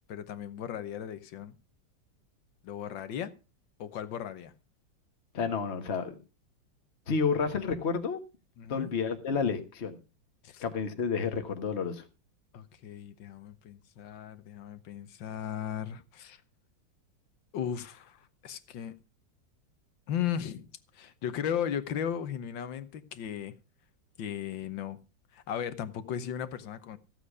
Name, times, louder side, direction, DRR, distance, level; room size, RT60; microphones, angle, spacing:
voice 1, 0.1-1.6 2.6-3.3 3.8-4.5 8.6-8.9 10.4-10.6 12.5-16.4 17.5-18.9 20.1-20.7 20.9-23.5 24.2-25.0 25.3-27.0, left 9 dB, 85° left, 1.8 m, -36 dB
voice 2, 5.3-6.2 7.1-8.2 8.7-10.0 10.6-12.0, left 5 dB, 40° left, 1.5 m, -30 dB
15.0 x 8.3 x 4.9 m
omnidirectional pair, 2.0 m